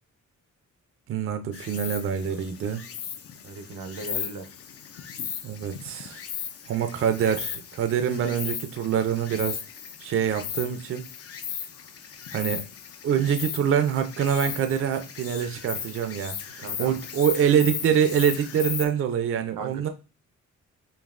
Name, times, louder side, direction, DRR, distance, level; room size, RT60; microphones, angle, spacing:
voice 1, 1.1-2.8 5.4-6.2 6.7-9.6 10.0-11.1 12.3-12.6 13.0-19.9, right 8 dB, 45° right, 0.4 m, -25 dB
Insect, 1.5-18.9, left 8 dB, 50° left, 0.5 m, -37 dB
voice 2, 3.4-4.5 16.6-17.0 19.6-19.9, right 4 dB, 85° right, 0.7 m, -37 dB
5.2 x 2.7 x 2.4 m
wide cardioid pair, 165°, 31 cm